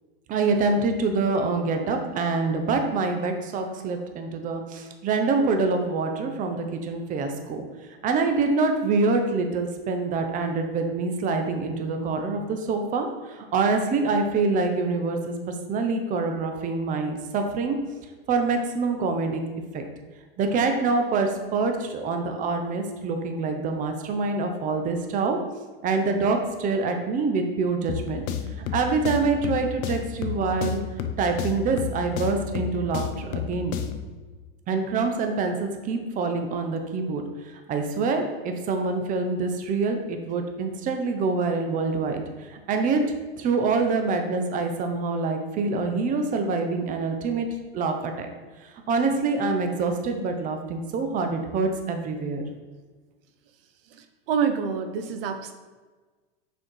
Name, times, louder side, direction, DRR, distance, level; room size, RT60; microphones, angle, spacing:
voice 1, 0.3-7.6 8.0-17.8 18.3-19.4 19.7-19.9 20.4-25.4 25.8-28.2 28.7-30.8 31.2-33.8 34.7-37.2 37.5-43.1 43.4-47.5 47.7-48.3 48.9-52.4, right 4 dB, 25° right, 5 dB, 0.8 m, -25 dB
sound 1, 27.9-34.1, left 8 dB, 45° left, 0.7 m, -32 dB
voice 2, 53.9-55.5, right 6 dB, 65° right, 8 dB, 0.7 m, -27 dB
6.3 x 4.5 x 4.5 m, 1.3 s
supercardioid pair, 130°, 31 cm